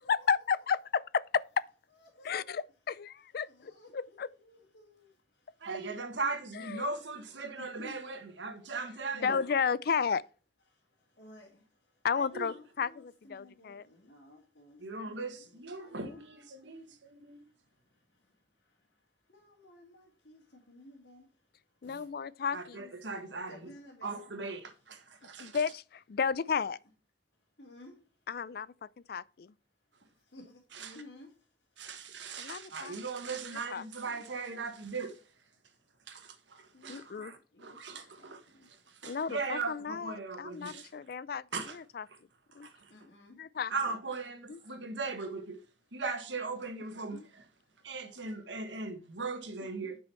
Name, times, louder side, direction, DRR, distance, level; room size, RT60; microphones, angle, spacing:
voice 1, 0.0-1.7 2.2-4.3 6.5-6.9 9.1-10.2 12.0-13.9 16.0-16.2 21.8-22.9 25.4-26.8 28.3-28.7 29.1-29.5 32.4-33.0 33.7-33.8 36.9-37.3 39.0-41.4 41.7-42.1 42.5-42.7 43.4-43.7 44.5-44.6 47.1-47.3 49.8-49.9, left 6 dB, 55° left, 0.4 m, -33 dB
voice 2, 2.2-2.5 3.4-5.1 7.6-8.0 9.2-9.4 11.2-11.6 12.3-15.3 15.8-16.0 16.5-16.8 19.3-21.2 21.8-22.1 23.5-24.2 27.6-28.0 30.3-30.5 30.8-31.3 36.7-38.7 42.9-43.4, left 1 dB, 70° left, 2.4 m, -54 dB
voice 3, 5.6-9.4 12.1-12.5 14.8-17.4 22.5-23.7 24.0-25.6 30.7-31.0 31.8-35.2 36.1-40.9 41.5-41.8 42.6-42.9 43.7-45.6 45.9-47.4 47.8-50.0, right 4 dB, 90° right, 1.5 m, -39 dB
10.0 x 5.5 x 4.4 m
head